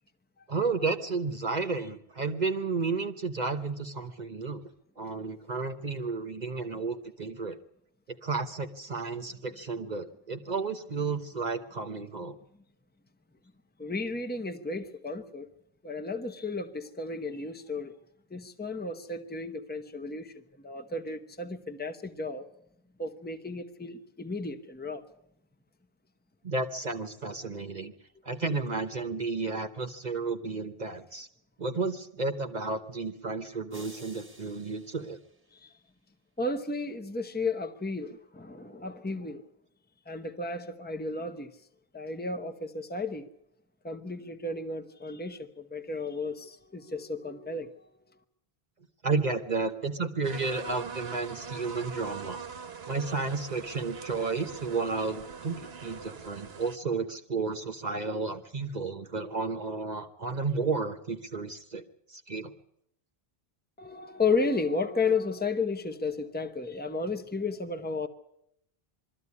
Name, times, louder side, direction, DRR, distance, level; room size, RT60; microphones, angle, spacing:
voice 1, 0.5-4.6 5.0-7.6 8.1-12.4 26.4-27.9 28.2-31.3 31.6-35.2 49.0-52.4 52.9-61.8 62.1-62.5, right 4 dB, 45° right, 1.1 m, -32 dB
voice 2, 13.8-15.5 15.8-17.9 18.3-20.3 20.6-22.5 23.0-25.0 35.5-35.7 36.4-39.4 40.1-41.5 41.9-43.3 43.8-47.7 63.8-68.1, left 3 dB, 10° left, 1.0 m, -33 dB
sound 1, 33.7-36.0, right 1 dB, 10° right, 1.6 m, -53 dB
sound 2, 50.2-56.8, right 6 dB, 80° right, 1.3 m, -42 dB
22.5 x 14.0 x 9.7 m
omnidirectional pair, 1.0 m